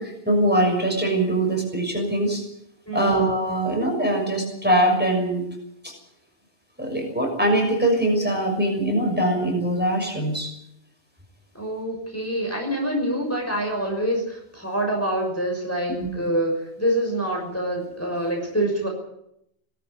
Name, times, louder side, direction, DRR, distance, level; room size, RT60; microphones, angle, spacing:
voice 1, 0.0-2.4 2.9-5.5 5.8-5.9 6.8-10.5 16.0-16.1, right 1 dB, 10° right, 1 dB, 6.5 m, -22 dB
voice 2, 2.9-3.2 11.5-18.9, right 1 dB, 15° left, 0 dB, 6.3 m, -26 dB
21.0 x 13.5 x 10.0 m, 0.78 s
omnidirectional pair, 1.1 m